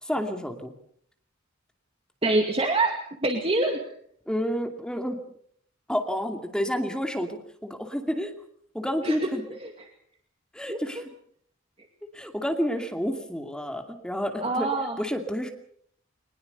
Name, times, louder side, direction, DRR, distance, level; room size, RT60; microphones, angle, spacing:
voice 1, 0.0-0.7 4.3-5.2 5.9-7.3 7.6-8.3 8.7-9.4 10.5-11.0 12.1-14.7 15.0-15.5, equal, 5° left, 4 dB, 2.5 m, -29 dB
voice 2, 2.2-3.0 3.2-3.8 9.0-9.2 10.7-10.8 14.4-15.0, right 2 dB, 30° right, 3 dB, 2.2 m, -24 dB
23.5 x 20.5 x 6.8 m, 0.63 s
head